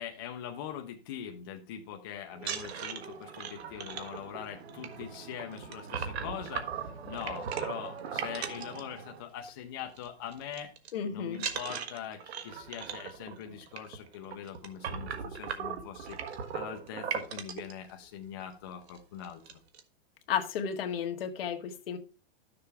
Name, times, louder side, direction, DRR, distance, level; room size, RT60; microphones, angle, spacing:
voice 1, 0.0-6.7 7.0-10.7 11.1-16.2 16.5-19.6, left 9 dB, 20° left, 0.5 m, -42 dB
sound 1, 2.3-9.5 9.8-10.1 10.3-10.9 11.3-17.7 18.4-18.5 18.8-19.0 19.2-19.8, right 7 dB, 70° right, 1.5 m, -38 dB
voice 2, 10.9-11.4 20.3-22.0, left 8 dB, 60° left, 1.5 m, -33 dB
12.5 x 6.8 x 3.4 m
supercardioid pair, 175°, 33 cm